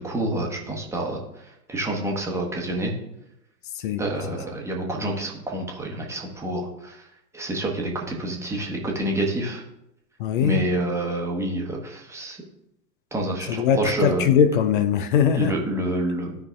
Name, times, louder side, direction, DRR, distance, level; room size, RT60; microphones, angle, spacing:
voice 1, 0.0-2.9 4.0-7.1 7.3-9.6 10.4-12.4 13.1-14.3 15.3-16.3, right 1 dB, 5° right, 1.1 m, -28 dB
voice 2, 10.2-10.6 13.5-15.5, left 8 dB, 35° left, 0.4 m, -21 dB
13.0 x 5.4 x 2.4 m
figure-of-eight pair, 90°, 46 cm